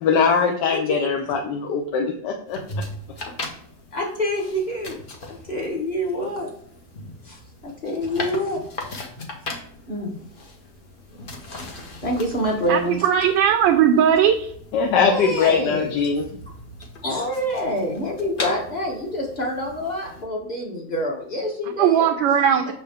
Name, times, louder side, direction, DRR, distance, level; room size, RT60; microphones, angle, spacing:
voice 1, 0.0-2.6 14.7-16.3, left 5 dB, 70° left, 2 dB, 1.2 m, -21 dB
voice 2, 0.7-1.1 3.9-4.9 5.5-6.5 7.3-7.4 7.8-8.6 9.9-10.1 12.0-13.1 15.1-15.9 17.0-22.1, equal, 25° left, -1 dB, 1.2 m, -26 dB
sound 1, 2.5-20.2, left 2 dB, 40° left, 0.8 m, -38 dB
voice 3, 12.7-14.5 21.8-22.7, right 8 dB, 80° right, 6 dB, 1.3 m, -18 dB
6.5 x 4.4 x 3.5 m, 0.63 s
omnidirectional pair, 2.1 m